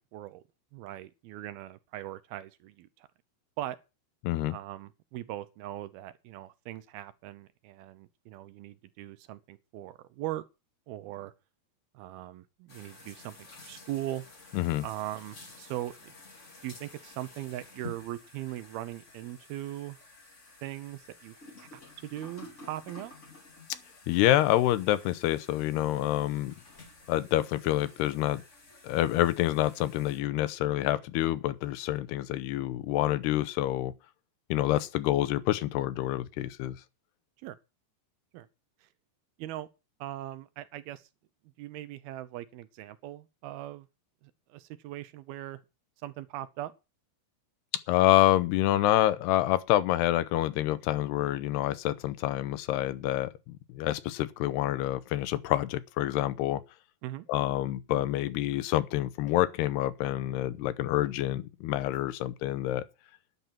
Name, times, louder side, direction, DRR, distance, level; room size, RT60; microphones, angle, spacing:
voice 1, 0.1-0.4 0.7-3.1 3.6-3.8 4.5-10.4 10.9-11.3 11.9-13.4 13.6-14.2 14.8-16.1 16.6-20.0 20.6-23.1 37.4-37.6 38.3-38.5 38.8-38.9 39.4-39.7 40.0-41.1 41.6-43.9 44.2-45.6 46.0-46.7 57.0-57.3, right 14 dB, 75° right, 2.5 m, -40 dB
voice 2, 4.2-4.5 14.5-14.9 24.1-26.5 27.1-28.4 28.8-33.9 34.5-36.8 47.9-56.6 57.3-62.9, left 14 dB, 80° left, 2.9 m, -27 dB
sound 1, 12.7-30.2, left 2 dB, 25° left, 2.1 m, -52 dB
11.0 x 10.5 x 5.8 m
omnidirectional pair, 4.7 m